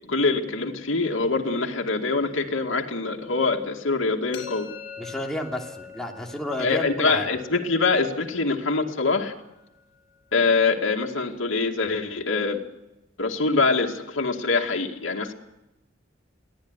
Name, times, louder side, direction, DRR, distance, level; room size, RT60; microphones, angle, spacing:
voice 1, 0.1-4.7 6.6-9.3 10.3-12.6 13.2-15.3, left 3 dB, 90° left, 1 dB, 2.3 m, -24 dB
sound 1, 4.3-10.2, left 6 dB, 65° left, 6.1 m, -44 dB
voice 2, 5.0-7.3, left 1 dB, 5° left, 0 dB, 3.0 m, -31 dB
23.0 x 16.0 x 9.9 m, 0.94 s
head